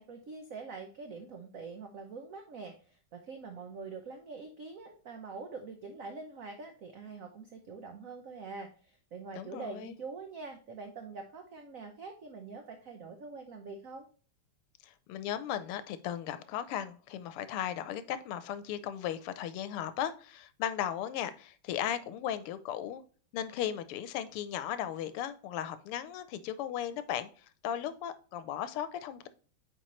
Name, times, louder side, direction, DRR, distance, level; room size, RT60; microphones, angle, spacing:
voice 1, 0.0-14.1, right 4 dB, 60° right, 5 dB, 0.9 m, -44 dB
voice 2, 9.3-9.9 14.8-23.0 23.3-29.3, left 10 dB, 90° left, 13 dB, 1.6 m, -36 dB
9.0 x 4.3 x 3.1 m, 0.41 s
omnidirectional pair, 2.4 m